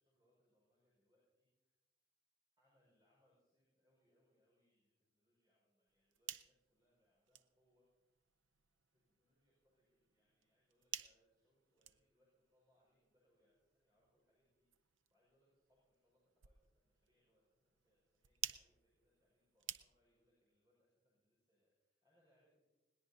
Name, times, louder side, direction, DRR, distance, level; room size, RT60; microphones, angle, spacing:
voice 1, 0.0-1.7 2.6-7.9 8.9-22.6, equal, 20° right, -6 dB, 5.6 m, -80 dB
sound 1, 5.9-20.3, right 11 dB, 80° right, 0.6 m, -54 dB
21.0 x 18.5 x 2.8 m, 1.1 s
head